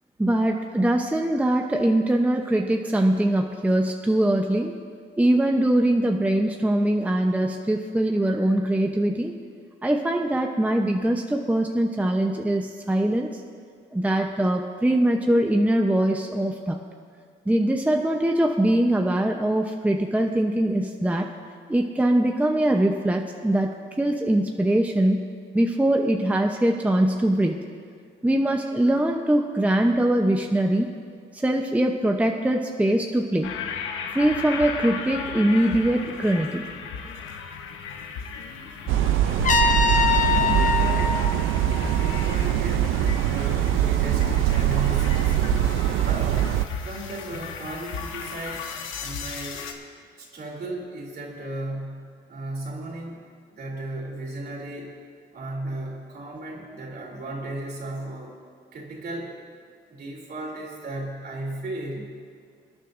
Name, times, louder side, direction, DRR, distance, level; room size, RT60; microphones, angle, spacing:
voice 1, 0.2-4.7 5.2-9.3 9.8-13.4 13.9-16.8 17.5-21.3 21.7-25.3 25.5-27.6 28.2-30.9 31.3-33.5 34.1-36.7, right 1 dB, 5° right, 2 dB, 0.7 m, -22 dB
sound 1, 33.4-49.7, left 6 dB, 90° left, 1.0 m, -35 dB
sound 2, 38.9-46.7, right 12 dB, 90° right, 0.5 m, -22 dB
Trumpet, 39.4-42.4, left 6 dB, 40° left, 0.8 m, -24 dB
voice 2, 40.3-41.2 42.0-45.7 46.0-48.7 49.0-49.7 50.2-55.0 55.3-58.4 58.7-59.4 59.9-62.1, right 1 dB, 55° right, -1 dB, 2.9 m, -35 dB
24.5 x 9.9 x 2.6 m, 2.1 s
cardioid pair, 90°, 20 cm